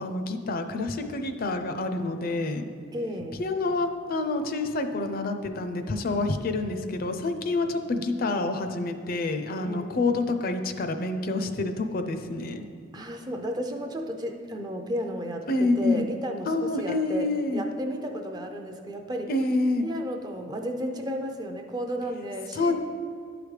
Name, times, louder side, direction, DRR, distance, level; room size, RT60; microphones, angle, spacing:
voice 1, 0.0-2.7 3.4-12.6 15.5-16.1 16.5-17.6 19.3-19.9 22.6-22.7, left 2 dB, 50° left, 7 dB, 0.5 m, -27 dB
voice 2, 2.9-3.4 9.6-10.1 12.9-19.3 19.8-22.7, equal, 20° right, 4 dB, 0.5 m, -33 dB
11.0 x 4.9 x 3.2 m, 2.4 s
head